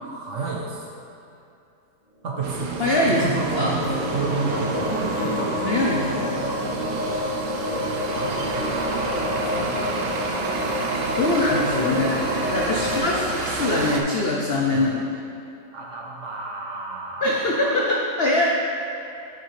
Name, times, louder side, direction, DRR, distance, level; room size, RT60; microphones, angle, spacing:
voice 1, 0.0-0.9 2.2-5.5 6.1-6.5 7.2-7.4 8.1-10.0 11.2-12.1 12.8-13.3 14.7-14.9 15.7-17.8, right 3 dB, 55° right, -1 dB, 0.9 m, -33 dB
sound 1, 2.3-13.0, left 1 dB, 25° right, 1.9 m, -28 dB
sound 2, 2.4-14.0, right 4 dB, 85° right, 1.3 m, -29 dB
voice 2, 2.8-3.3 3.5-3.7 5.6-6.5 11.2-12.2 12.5-15.1 17.2-18.5, left 2 dB, 65° left, -2 dB, 0.6 m, -23 dB
8.3 x 6.4 x 3.2 m, 2.7 s
omnidirectional pair, 1.8 m